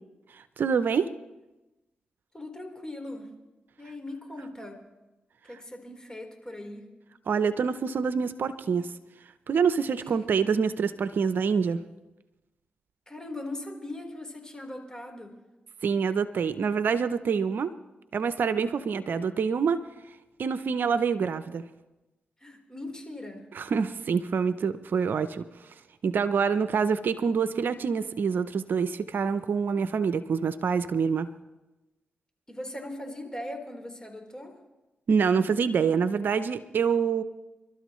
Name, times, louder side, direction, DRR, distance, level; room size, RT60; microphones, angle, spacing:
voice 1, 0.3-1.1 7.3-8.9 9.5-11.8 15.8-17.7 18.1-19.8 20.4-21.6 23.5-25.5 26.0-31.3 35.1-37.2, right 6 dB, 65° right, 12 dB, 0.6 m, -26 dB
voice 2, 2.3-3.3 3.8-4.8 5.4-6.9 13.1-15.4 22.4-23.5 32.5-34.6, left 1 dB, 20° left, 3 dB, 4.0 m, -39 dB
28.0 x 12.5 x 3.1 m, 1.1 s
supercardioid pair, 45°, 4 cm